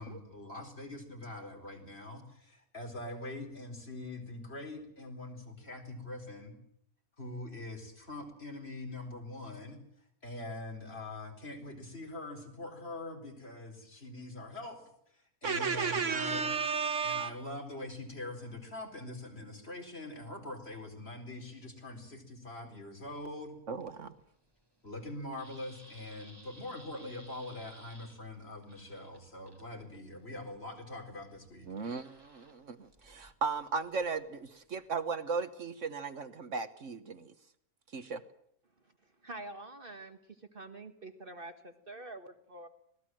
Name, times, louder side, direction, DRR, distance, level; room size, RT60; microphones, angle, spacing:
voice 1, 0.0-6.5 7.2-9.8 10.2-14.8 15.4-16.4 17.0-23.6 24.8-31.7, left 2 dB, 45° left, 3 dB, 4.5 m, -43 dB
voice 2, 15.4-17.4 23.7-24.2 31.7-37.3 37.9-38.2, right 5 dB, 60° right, 11 dB, 1.5 m, -35 dB
sound 1, 23.0-35.0, equal, 15° right, 3.9 m, -60 dB
voice 3, 39.2-42.7, right 2 dB, 40° right, 7 dB, 1.7 m, -46 dB
25.5 x 19.0 x 7.6 m, 0.70 s
omnidirectional pair, 1.5 m